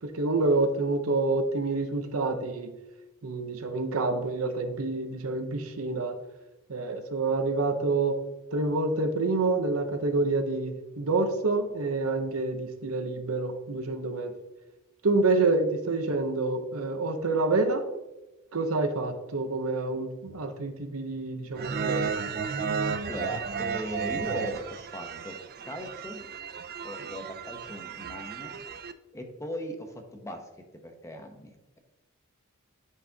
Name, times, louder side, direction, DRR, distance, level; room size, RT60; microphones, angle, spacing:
voice 1, 0.0-2.7 3.2-6.2 6.7-8.2 8.5-14.3 15.0-17.8 18.5-22.0, right 3 dB, 70° right, 7 dB, 0.8 m, -27 dB
sound 1, 21.6-28.9, right 6 dB, 45° right, 0.4 m, -33 dB
voice 2, 23.1-25.4 25.6-26.2 26.8-28.5 29.1-30.5 30.8-31.8, equal, 15° left, 4 dB, 0.8 m, -38 dB
11.0 x 4.8 x 2.8 m, 1.0 s
head